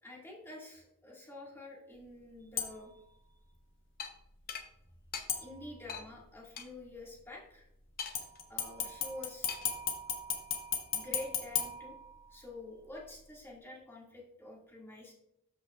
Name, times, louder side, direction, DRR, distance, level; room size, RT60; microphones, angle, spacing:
voice 1, 0.0-3.0 5.4-7.7 8.5-9.6 10.9-12.0 12.3-15.1, left 2 dB, 10° left, -4 dB, 2.0 m, -48 dB
sound 1, 2.6-3.0 5.3-6.0 8.1-12.5 13.0-13.1, left 7 dB, 60° left, 1.3 m, -37 dB
sound 2, 4.0-4.1 4.5-4.7 5.1-5.3 5.9-6.1 6.6-6.7 8.0-8.4 9.5-9.8, left 6 dB, 45° left, 0.8 m, -41 dB
13.0 x 6.0 x 2.4 m, 0.82 s
head